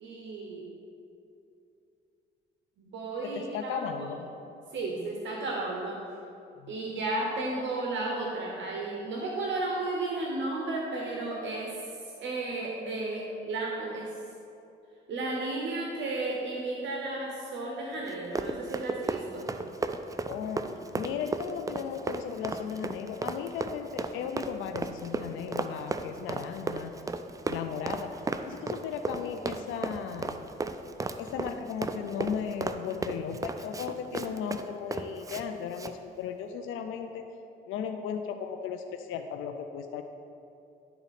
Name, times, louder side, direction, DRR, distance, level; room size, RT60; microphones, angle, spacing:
voice 1, 0.0-0.7 2.8-3.8 4.7-6.0 6.7-11.7 12.2-14.1 15.1-19.5, right 2 dB, 70° right, -2 dB, 0.9 m, -33 dB
voice 2, 3.2-4.3 6.6-6.8 20.3-20.6 21.0-26.9 27.5-28.1 28.5-30.4 31.2-37.2 37.7-40.0, left 7 dB, 90° left, 6 dB, 0.4 m, -36 dB
Run, 18.1-35.4 35.7-35.9, right 3 dB, 15° right, 0.3 m, -34 dB
11.0 x 4.0 x 4.1 m, 2.7 s
cardioid pair, 90°, 20 cm